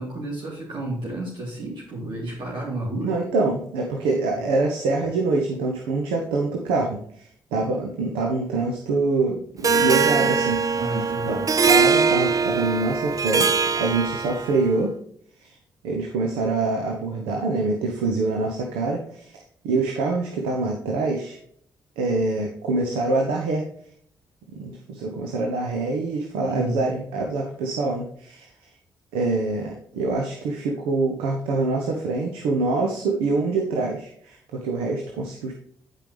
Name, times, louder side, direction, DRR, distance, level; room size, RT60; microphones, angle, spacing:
voice 1, 0.0-3.1 10.8-11.4 26.4-26.8, right 1 dB, 65° right, -5 dB, 3.2 m, -31 dB
voice 2, 3.0-10.6 11.3-11.4 11.7-14.9 15.4-15.6 15.8-21.4 22.0-23.6 24.6-28.5 29.1-35.5, right 3 dB, 90° right, 1 dB, 1.2 m, -25 dB
Harp, 9.6-14.6, right 5 dB, 40° right, 0.6 m, -21 dB
9.8 x 5.5 x 3.3 m, 0.66 s
supercardioid pair, 55°, 9 cm